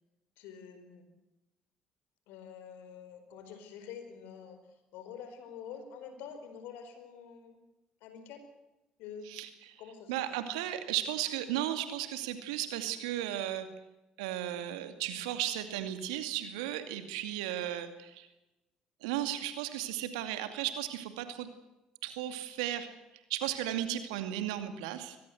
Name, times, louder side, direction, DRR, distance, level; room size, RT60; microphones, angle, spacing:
voice 1, 0.4-1.1 2.3-4.6 4.9-7.6 8.0-8.4 9.0-9.3 9.8-10.3 14.5-14.6, left 7 dB, 75° left, 9 dB, 4.9 m, -47 dB
voice 2, 9.3-9.8 10.1-13.7 14.2-18.3 19.0-21.5 22.0-22.9 23.3-25.2, right 12 dB, 80° right, 9 dB, 2.4 m, -35 dB
23.5 x 20.0 x 8.0 m, 0.98 s
hypercardioid pair, 55°, 3 cm